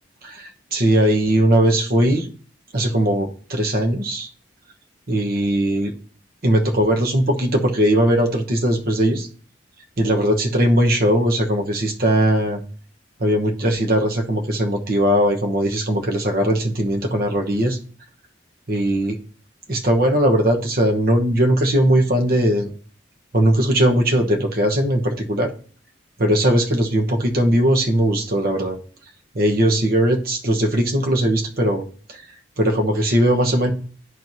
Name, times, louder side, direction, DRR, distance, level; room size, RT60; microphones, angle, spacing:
voice 1, 0.2-2.3 2.7-4.3 5.1-5.9 6.4-9.3 10.0-12.6 13.2-17.8 18.7-19.2 19.7-22.7 23.3-25.5 26.2-28.8 29.3-32.2 32.6-33.7, right 1 dB, 50° right, 3 dB, 1.0 m, -19 dB
11.0 x 4.5 x 2.6 m, 0.43 s
head